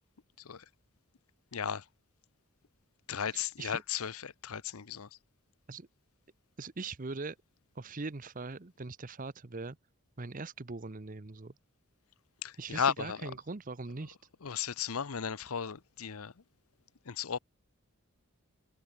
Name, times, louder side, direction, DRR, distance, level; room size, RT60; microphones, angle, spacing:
voice 1, 1.5-1.8 3.1-5.1 12.4-13.2 14.4-16.3 17.1-17.4, left 7 dB, 90° left, 0.8 m, -35 dB
voice 2, 3.3-3.8 5.7-5.9 6.6-7.4 7.8-9.8 10.2-11.5 12.6-14.2, right 3 dB, 40° right, 0.8 m, -41 dB
head